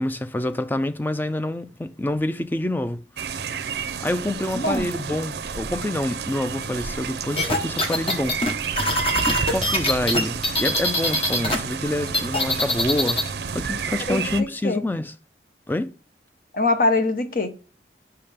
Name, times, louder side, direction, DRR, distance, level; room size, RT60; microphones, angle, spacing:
voice 1, 0.0-3.0 4.0-8.4 9.1-15.1 15.7-16.0, left 1 dB, 10° left, 0.3 m, -27 dB
sound 1, 3.2-14.4, right 6 dB, 65° right, 0.5 m, -31 dB
voice 2, 4.5-4.9 14.1-14.8 16.5-17.5, left 2 dB, 50° left, 0.9 m, -23 dB
sound 2, 7.4-11.6 11.9-13.3, left 1 dB, 30° left, 1.1 m, -23 dB
6.9 x 5.7 x 3.4 m
head